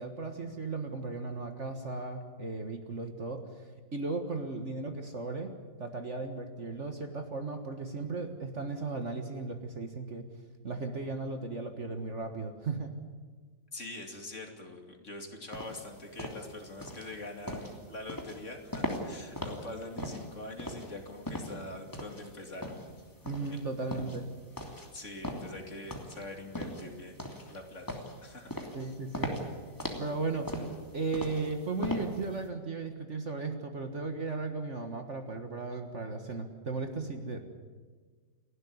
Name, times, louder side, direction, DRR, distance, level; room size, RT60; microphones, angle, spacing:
voice 1, 0.0-3.4 3.9-5.5 5.8-10.3 10.6-12.9 23.2-24.3 28.7-29.3 30.0-30.5 30.9-37.4, right 3 dB, 40° right, 6 dB, 1.8 m, -36 dB
voice 2, 13.7-22.7 23.5-23.6 24.9-27.2 27.5-28.5 28.8-28.9, left 2 dB, 40° left, 3 dB, 3.0 m, -44 dB
sound 1, 15.5-32.4, equal, 10° left, 2.8 m, -39 dB
29.5 x 12.0 x 9.7 m, 1.5 s
omnidirectional pair, 1.9 m